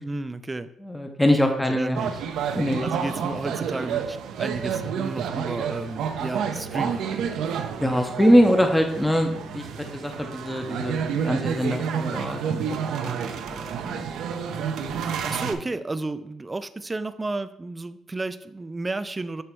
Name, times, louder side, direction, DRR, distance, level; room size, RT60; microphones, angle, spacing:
voice 1, 0.0-0.7 1.5-2.2 2.8-7.6 14.8-19.4, right 2 dB, 20° right, 13 dB, 0.4 m, -32 dB
voice 2, 0.8-2.0 2.5-2.9 7.8-9.7 9.9-12.7 13.0-14.1, equal, 5° left, 4 dB, 0.7 m, -23 dB
sound 1, 2.0-15.5, right 7 dB, 80° right, 0.6 m, -30 dB
7.7 x 3.2 x 4.5 m, 0.80 s
cardioid pair, 90°, 0 cm